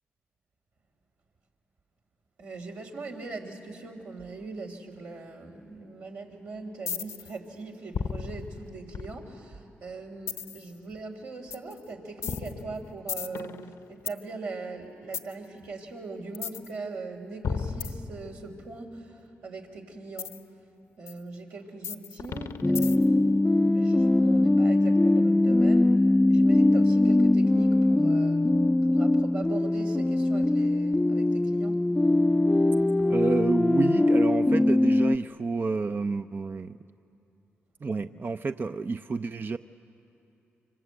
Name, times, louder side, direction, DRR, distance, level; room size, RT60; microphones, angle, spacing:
voice 1, 2.4-20.4 21.0-28.5 28.8-31.8, right 3 dB, 85° right, -2 dB, 3.3 m, -41 dB
sound 1, 6.9-7.3 7.9-9.5 10.3-10.7 11.5-11.7 12.2-14.2 15.1-15.3 16.3-16.7 17.4-18.6 20.2-20.4 21.1-21.2 21.8-23.2, left 6 dB, 75° left, 1.0 m, -34 dB
sound 2, 22.6-35.2, left 2 dB, 15° left, 0.5 m, -22 dB
voice 2, 33.1-36.8 37.8-39.6, right 4 dB, 40° right, 9 dB, 0.6 m, -29 dB
25.5 x 25.0 x 8.0 m, 2.8 s
supercardioid pair, 45°, 5 cm